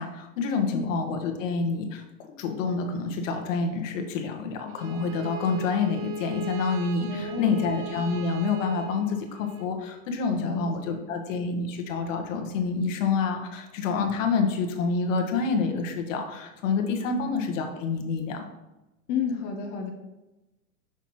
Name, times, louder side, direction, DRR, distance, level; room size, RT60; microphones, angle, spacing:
voice 1, 0.0-2.0 2.4-18.4, left 4 dB, 55° left, 4 dB, 1.2 m, -28 dB
Bowed string instrument, 4.7-9.7, right 5 dB, 30° right, 0.3 m, -39 dB
voice 2, 7.1-7.7 10.4-11.0 17.1-17.3 19.1-19.9, left 5 dB, 30° left, 2 dB, 0.7 m, -32 dB
5.9 x 5.6 x 3.1 m, 1.0 s
hypercardioid pair, 110°, 45 cm